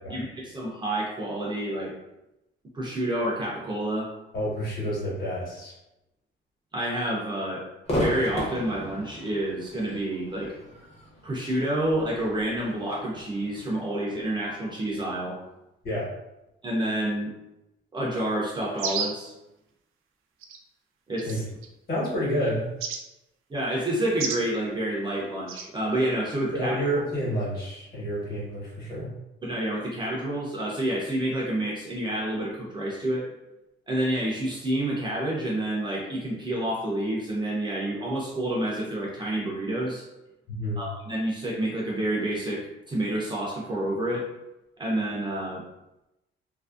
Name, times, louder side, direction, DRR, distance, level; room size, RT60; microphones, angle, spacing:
voice 1, 0.1-1.9 2.7-4.1 6.7-7.6 7.9-10.5 11.2-15.4 16.6-17.3 17.9-19.3 21.1-21.4 23.5-26.8 29.4-33.3 33.9-40.0 40.8-44.2 44.8-45.6, right 1 dB, 20° right, -4 dB, 0.4 m, -28 dB
voice 2, 4.3-5.7 15.8-16.1 21.2-21.4 21.9-22.7 26.5-29.1 40.5-40.8, equal, 45° left, -6 dB, 1.2 m, -29 dB
Crowd / Fireworks, 7.8-15.2, equal, 30° left, 0.8 m, -36 dB
sound 1, 18.8-19.3 20.4-20.6 21.2-21.7 22.8-23.0 24.2-24.4 25.5-25.7, right 6 dB, 85° right, 0.4 m, -31 dB
2.7 x 2.5 x 2.3 m, 0.92 s
cardioid pair, 175°, 21 cm